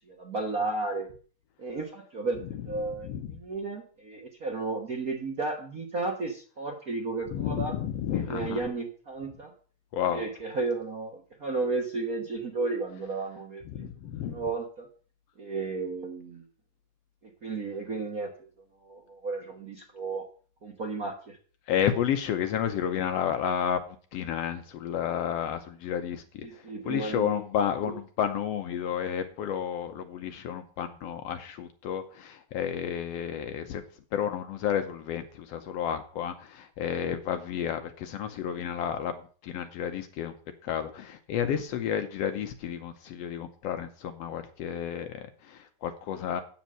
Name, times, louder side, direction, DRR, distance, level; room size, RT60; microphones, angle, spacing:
voice 1, 0.1-1.1 1.6-7.7 8.1-9.5 10.1-13.9 14.3-14.9 15.4-16.4 17.2-18.5 18.8-20.2 20.6-21.4 26.4-27.4, right 3 dB, 65° right, 1 dB, 0.8 m, -33 dB
voice 2, 3.0-3.4 7.3-8.6 9.9-10.2 13.7-14.4 21.7-23.8 24.1-40.4 40.6-46.4, left 9 dB, 85° left, 7 dB, 1.4 m, -31 dB
8.1 x 7.2 x 7.5 m, 0.41 s
omnidirectional pair, 3.9 m